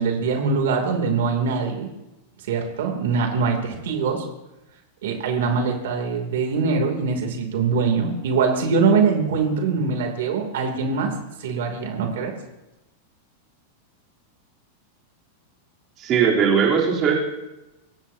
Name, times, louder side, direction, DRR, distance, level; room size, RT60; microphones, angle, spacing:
voice 1, 0.0-1.9 2.4-4.3 5.0-11.1 11.4-12.3, right 5 dB, 80° right, 3 dB, 2.9 m, -23 dB
voice 2, 16.0-17.1, right 6 dB, 30° right, -3 dB, 3.5 m, -19 dB
24.0 x 17.5 x 2.8 m, 0.98 s
supercardioid pair, 160°, 0 cm